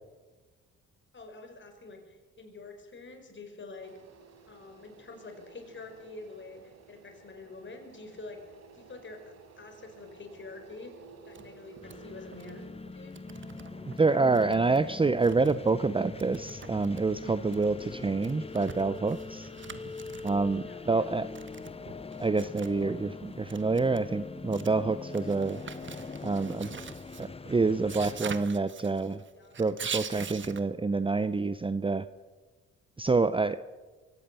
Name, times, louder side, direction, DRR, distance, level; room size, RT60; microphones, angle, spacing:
voice 1, 1.1-3.9 4.5-8.4 8.7-9.2 9.6-10.9 11.3-13.3 14.0-14.2 14.9-15.0 20.6-21.3 29.3-29.7, left 3 dB, 40° left, 5 dB, 5.1 m, -47 dB
sound 1, 3.8-12.7, right 5 dB, 60° right, 4.3 m, -54 dB
sound 2, 11.1-11.5 11.8-12.0 12.3-12.6 12.9-14.0 14.3-15.9 16.2-20.6 21.4-23.0 23.3-30.6, right 6 dB, 40° right, 1.5 m, -44 dB
sound 3, 11.8-28.2, left 4 dB, 20° left, 0.9 m, -43 dB
voice 2, 14.0-19.5 20.2-21.3 22.2-25.6 26.2-26.7 27.2-29.2 29.6-32.1 33.0-33.6, right 3 dB, 15° right, 13 dB, 0.7 m, -27 dB
24.0 x 16.5 x 6.9 m, 1.3 s
cardioid pair, 90°, 30 cm